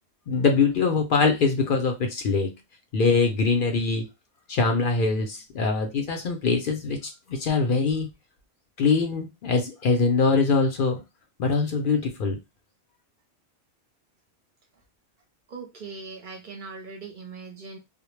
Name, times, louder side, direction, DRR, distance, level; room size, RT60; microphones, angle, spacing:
voice 1, 0.3-2.5 2.9-4.1 4.5-8.1 8.8-11.0 11.4-12.4, left 4 dB, 60° left, 4 dB, 0.7 m, -23 dB
voice 2, 15.5-17.8, right 4 dB, 55° right, 3 dB, 0.7 m, -40 dB
2.1 x 2.0 x 3.1 m, 0.23 s
omnidirectional pair, 1.1 m